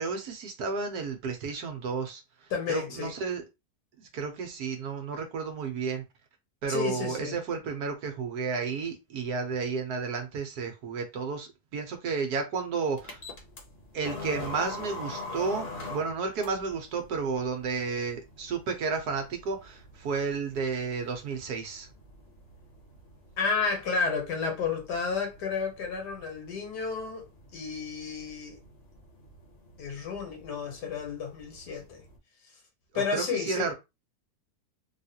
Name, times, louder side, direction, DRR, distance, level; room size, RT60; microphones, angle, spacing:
voice 1, 0.0-2.2 2.7-3.4 4.0-6.0 6.6-13.2 13.9-21.9 32.9-33.7, right 5 dB, 75° right, 1.4 m, -32 dB
voice 2, 2.5-3.1 6.7-7.4 23.4-28.6 29.8-32.0 32.9-33.7, left 5 dB, 85° left, 1.7 m, -31 dB
sound 1, 13.0-32.2, left 2 dB, 45° left, 1.0 m, -45 dB
3.6 x 2.4 x 2.8 m
omnidirectional pair, 1.7 m